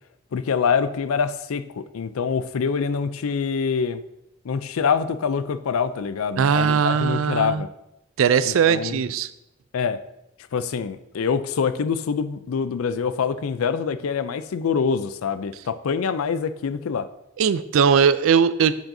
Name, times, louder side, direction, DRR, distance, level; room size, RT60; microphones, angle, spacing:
voice 1, 0.3-4.0 4.4-7.7 8.5-9.0 9.7-10.0 10.5-17.1, left 6 dB, 85° left, 13 dB, 0.4 m, -25 dB
voice 2, 6.4-7.6 8.2-9.3 17.4-18.7, right 7 dB, 75° right, 15 dB, 0.4 m, -19 dB
7.5 x 7.2 x 2.7 m, 0.85 s
head